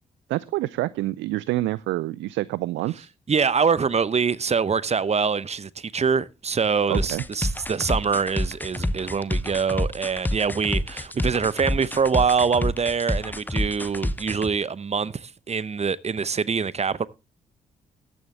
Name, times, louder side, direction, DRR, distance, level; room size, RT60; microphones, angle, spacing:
voice 1, 0.3-3.1 6.9-7.2, right 16 dB, 65° right, 0.5 m, -27 dB
voice 2, 3.3-17.1, right 5 dB, 30° right, 0.8 m, -24 dB
sound 1, 6.9-14.5, left 1 dB, 10° left, 0.9 m, -27 dB
14.0 x 10.0 x 3.3 m
hypercardioid pair, 40°, 20 cm